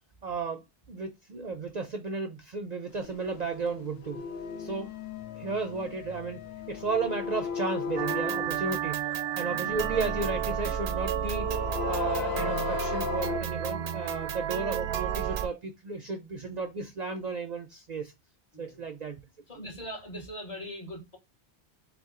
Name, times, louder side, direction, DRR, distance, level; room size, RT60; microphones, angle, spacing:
voice 1, 0.2-4.2 4.6-4.9 5.4-6.4 6.7-9.0 9.4-11.5 11.8-18.1 18.6-19.2, right 4 dB, 50° right, 0.6 m, -34 dB
sound 1, 3.0-10.4 11.0-13.4, left 6 dB, 80° left, 0.9 m, -36 dB
sound 2, 8.0-15.5, right 9 dB, 80° right, 0.8 m, -31 dB
voice 2, 19.5-21.2, equal, 35° left, 1.2 m, -41 dB
3.5 x 2.8 x 3.6 m
omnidirectional pair, 1.1 m